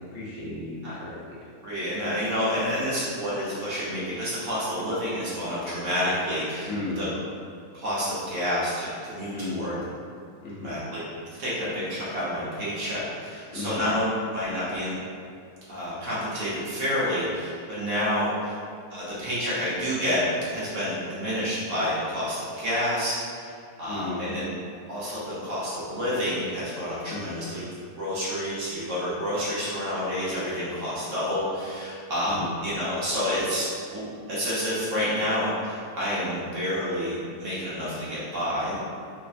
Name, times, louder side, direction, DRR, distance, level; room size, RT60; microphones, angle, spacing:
voice 1, 0.1-1.3 6.7-7.1 9.3-9.8 10.4-10.7 13.5-13.8 23.9-24.3 27.1-27.4 32.2-32.5 38.7-38.8, left 2 dB, 70° left, -8 dB, 0.8 m, -35 dB
voice 2, 1.6-7.1 7.7-9.7 10.6-11.0 11.4-15.0 15.7-18.6 18.9-20.2 20.5-24.5 24.9-27.6 28.0-38.7, equal, 60° right, -9 dB, 1.0 m, -29 dB
3.2 x 2.0 x 2.4 m, 2.3 s
omnidirectional pair, 1.6 m